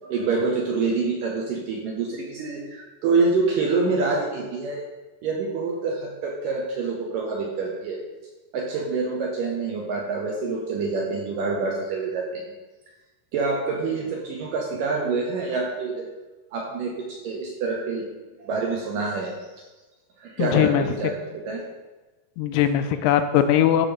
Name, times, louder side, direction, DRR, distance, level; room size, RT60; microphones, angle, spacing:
voice 1, 0.0-4.8 5.2-8.0 8.5-12.4 13.3-16.1 16.5-18.1 18.4-19.6 20.2-21.7, right 4 dB, 75° right, -1 dB, 2.1 m, -26 dB
voice 2, 20.4-20.9 22.4-23.9, left 10 dB, 85° left, 9 dB, 2.5 m, -20 dB
11.5 x 4.1 x 5.0 m, 1.2 s
omnidirectional pair, 4.8 m